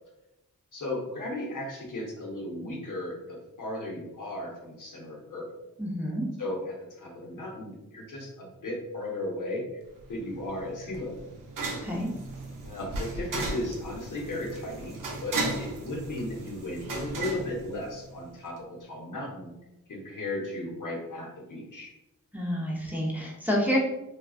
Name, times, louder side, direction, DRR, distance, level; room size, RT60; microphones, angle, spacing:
voice 1, 0.7-5.5 6.4-9.6 10.1-11.1 12.6-19.5 19.9-21.9 23.7-23.8, left 1 dB, 60° left, -2 dB, 0.8 m, -36 dB
voice 2, 5.8-6.2 11.8-12.1 22.3-23.8, equal, 5° right, -4 dB, 0.7 m, -28 dB
sound 1, 10.0-18.3, right 2 dB, 65° right, 0.6 m, -36 dB
2.3 x 2.2 x 2.3 m, 0.94 s
cardioid pair, 40°, 35 cm